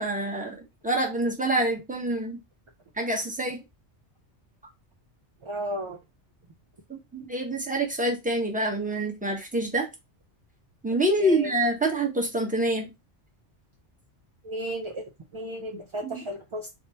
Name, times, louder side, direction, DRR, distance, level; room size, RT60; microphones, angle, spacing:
voice 1, 0.0-2.4 3.0-3.6 6.9-9.9 10.8-12.9 16.0-16.2, right 1 dB, 5° right, 1.0 m, -26 dB
voice 2, 5.4-6.0 14.4-15.0 15.3-16.8, right 1 dB, 45° right, 0.4 m, -33 dB
3.5 x 2.9 x 4.1 m
omnidirectional pair, 1.2 m